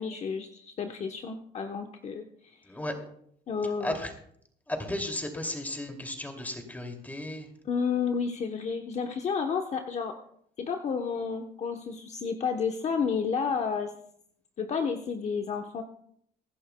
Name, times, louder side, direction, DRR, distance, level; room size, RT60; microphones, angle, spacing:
voice 1, 0.0-2.6 3.5-4.0 7.6-10.1 10.6-13.9 14.6-15.8, left 6 dB, 40° left, 4 dB, 1.0 m, -31 dB
voice 2, 2.6-3.0 3.8-4.1 4.7-7.5, left 1 dB, 10° left, 4 dB, 2.5 m, -34 dB
23.5 x 11.0 x 2.3 m, 0.67 s
cardioid pair, 110°, 17 cm